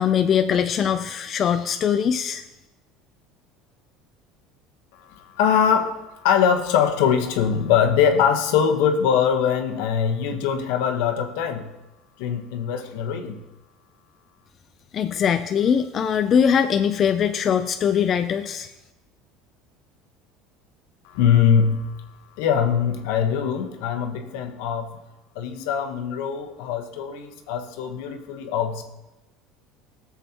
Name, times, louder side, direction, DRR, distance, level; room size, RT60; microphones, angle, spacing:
voice 1, 0.0-2.4 14.9-18.7, left 8 dB, 35° left, 8 dB, 0.4 m, -21 dB
voice 2, 5.4-5.9 6.2-11.7 12.2-13.4 21.1-21.9 22.4-24.9 25.3-28.8, left 7 dB, 80° left, 6 dB, 1.2 m, -22 dB
18.5 x 7.3 x 3.0 m, 1.0 s
cardioid pair, 135°, 0 cm